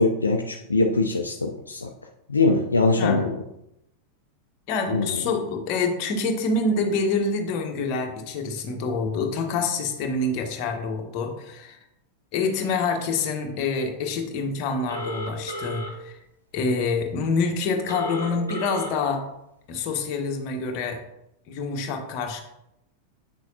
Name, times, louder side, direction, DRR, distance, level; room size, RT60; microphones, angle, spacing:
voice 1, 0.0-1.9 2.3-3.4 4.9-5.2, left 3 dB, 75° left, 3 dB, 0.5 m, -22 dB
voice 2, 4.7-11.8 12.3-16.2 16.5-19.2 19.7-21.0 21.5-22.4, left 4 dB, 40° left, 3 dB, 1.3 m, -26 dB
Telephone, 14.9-15.9 17.9-18.9, equal, 90° right, 1.8 m, -33 dB
8.4 x 6.2 x 2.8 m, 0.84 s
figure-of-eight pair, 90°, 0 cm